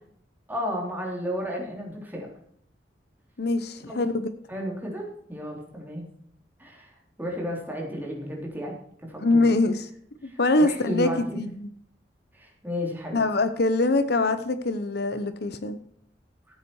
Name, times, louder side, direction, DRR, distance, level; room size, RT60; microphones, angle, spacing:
voice 1, 0.5-2.3 3.9-4.0 4.5-6.0 6.6-6.9 7.2-8.7 9.1-9.4 10.6-11.4 12.3-13.2, left 1 dB, 10° right, -1 dB, 3.5 m, -33 dB
voice 2, 3.4-4.3 9.2-9.9 10.2-11.7 13.1-15.8, left 2 dB, 65° left, 11 dB, 0.9 m, -24 dB
14.5 x 8.2 x 4.7 m, 0.66 s
head